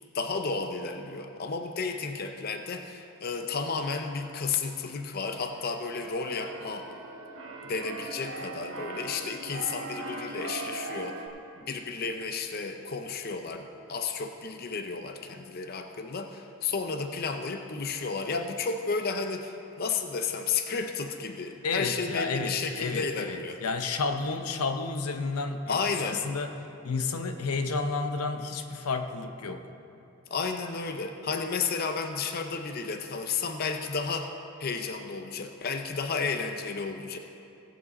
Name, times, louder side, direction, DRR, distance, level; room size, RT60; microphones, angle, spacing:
voice 1, 0.1-6.9 7.6-11.3 11.6-23.6 25.7-26.2 30.3-34.3 34.6-37.2, left 4 dB, 45° left, 6 dB, 0.5 m, -32 dB
Keyboard (musical), 5.4-11.3, right 2 dB, 60° right, 1.0 m, -40 dB
voice 2, 21.6-26.6 26.8-29.6, left 4 dB, 90° left, 7 dB, 0.7 m, -31 dB
17.5 x 7.4 x 4.1 m, 2.7 s
head